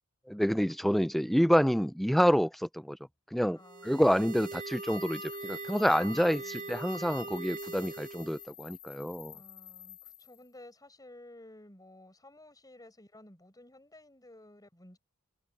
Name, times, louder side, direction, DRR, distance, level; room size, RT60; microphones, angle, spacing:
voice 1, 0.3-3.0 3.3-9.3, equal, ahead, 0.5 m, -28 dB
voice 2, 3.5-4.2 6.1-6.8 9.3-15.0, left 1 dB, 15° left, 6.9 m, -54 dB
sound 1, 3.6-8.5, right 3 dB, 40° right, 1.9 m, -42 dB
sound 2, 4.2-10.5, left 15 dB, 70° left, 7.8 m, -51 dB
head